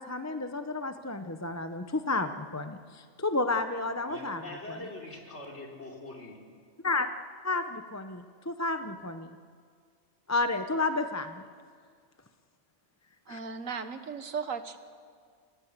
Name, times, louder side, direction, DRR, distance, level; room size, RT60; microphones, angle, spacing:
voice 1, 0.0-4.4 4.7-4.8 6.8-7.1 7.4-9.4 10.3-11.4 13.3-13.4, left 3 dB, 15° left, 8 dB, 0.7 m, -31 dB
voice 2, 4.1-6.4, left 2 dB, 55° left, 0 dB, 3.7 m, -43 dB
voice 3, 13.3-14.8, right 5 dB, 80° right, 9 dB, 1.7 m, -36 dB
30.0 x 17.0 x 8.3 m, 2.1 s
omnidirectional pair, 1.4 m